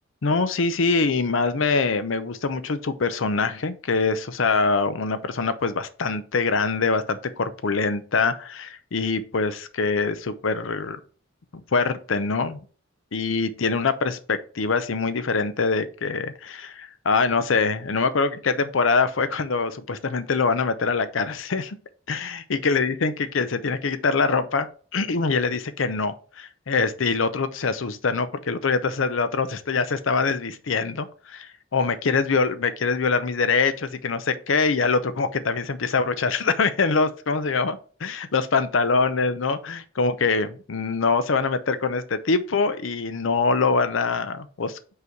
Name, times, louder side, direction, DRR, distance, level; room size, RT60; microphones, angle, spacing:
voice 1, 0.2-11.0 11.5-12.6 13.1-21.8 22.1-24.7 24.9-44.7, left 4 dB, 70° left, 0.6 m, -24 dB
5.6 x 4.0 x 4.5 m
head